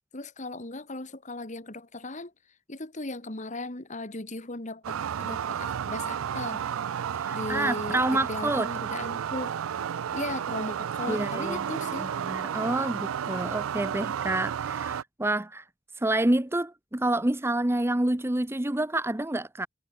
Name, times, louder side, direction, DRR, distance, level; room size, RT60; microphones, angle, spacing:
voice 1, 0.1-2.3 2.7-6.7 7.3-9.6 10.1-12.1, left 2 dB, 35° left, 1.9 m, -37 dB
sound 1, 4.8-15.0, right 8 dB, 85° right, 0.4 m, -32 dB
voice 2, 7.2-8.7 11.1-11.7 12.0-15.6 16.0-19.7, right 1 dB, 10° right, 0.7 m, -28 dB
head